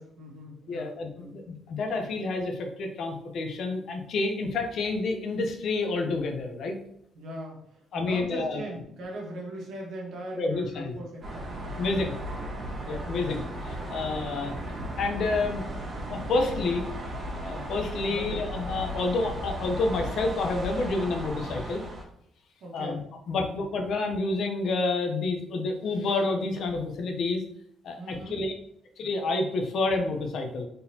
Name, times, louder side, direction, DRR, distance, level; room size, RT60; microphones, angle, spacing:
voice 1, 0.0-1.3 7.1-11.5 11.7-12.4 13.0-13.3 18.1-18.3 22.6-23.0 23.3-23.5 28.0-28.4, right 1 dB, 75° right, -2 dB, 1.3 m, -40 dB
voice 2, 0.7-6.8 7.9-8.6 10.3-11.0 11.8-12.1 12.9-14.6 15.0-15.7 16.1-16.8 17.4-21.8 22.7-23.0 23.3-27.4 27.8-28.5 29.0-30.6, left 3 dB, 70° left, 3 dB, 0.7 m, -29 dB
sound 1, 11.2-22.0, equal, 45° right, 1.6 m, -36 dB
4.0 x 3.9 x 2.8 m, 0.72 s
cardioid pair, 90°, 0 cm